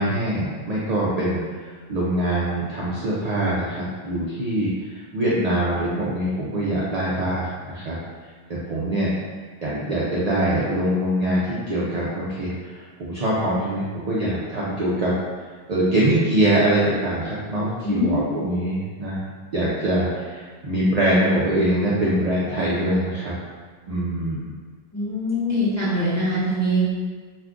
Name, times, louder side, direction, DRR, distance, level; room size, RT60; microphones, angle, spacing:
voice 1, 0.0-8.0 8.5-9.1 9.6-15.1 15.7-19.2 19.5-23.4 23.9-24.5, right 1 dB, 50° right, -7 dB, 0.5 m, -23 dB
voice 2, 17.8-18.2 24.9-26.9, equal, 15° left, -12 dB, 0.9 m, -23 dB
2.5 x 2.4 x 3.5 m, 1.5 s
omnidirectional pair, 1.0 m